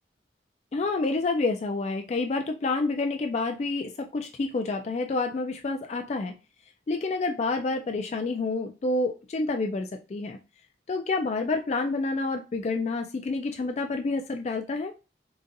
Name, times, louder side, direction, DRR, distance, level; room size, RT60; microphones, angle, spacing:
voice 1, 0.7-6.3 6.9-10.4 10.9-14.9, left 3 dB, 40° left, 0.3 m, -28 dB
3.9 x 2.4 x 2.5 m
head